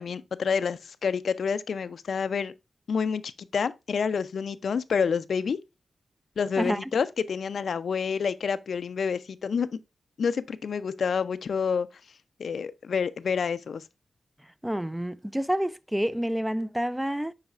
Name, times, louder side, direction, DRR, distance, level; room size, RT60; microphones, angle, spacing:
voice 1, 0.0-2.5 2.9-5.6 6.4-9.7 10.2-11.9 12.4-13.8, left 6 dB, 75° left, 0.4 m, -28 dB
voice 2, 6.6-6.9 14.4-17.3, equal, 5° right, 0.4 m, -29 dB
10.5 x 4.0 x 2.4 m
cardioid pair, 75°, 0 cm